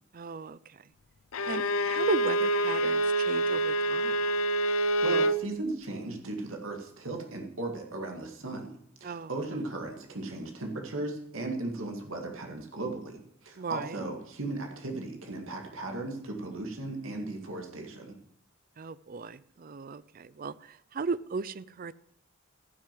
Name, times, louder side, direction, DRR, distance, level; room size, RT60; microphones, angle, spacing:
voice 1, 0.1-0.8 1.4-4.2 9.0-9.3 13.6-14.0 18.8-21.9, right 4 dB, 40° right, 18 dB, 0.4 m, -36 dB
Bowed string instrument, 1.3-5.4, right 1 dB, 85° left, 0.7 m, -26 dB
voice 2, 5.0-8.7 9.0-18.1, right 2 dB, 70° right, 2 dB, 2.2 m, -36 dB
14.5 x 6.5 x 7.6 m, 0.70 s
head